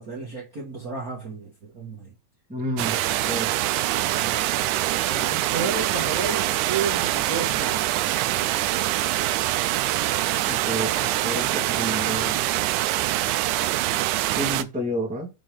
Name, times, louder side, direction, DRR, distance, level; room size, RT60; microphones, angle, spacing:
voice 1, 0.0-2.1 4.1-4.5 5.0-7.8, right 4 dB, 45° right, 1.2 m, -32 dB
voice 2, 2.5-3.7 10.5-12.4 14.3-15.3, equal, 5° right, 0.9 m, -30 dB
sound 1, 2.8-14.6, right 15 dB, 80° right, 1.8 m, -24 dB
6.2 x 3.9 x 4.9 m
omnidirectional pair, 3.8 m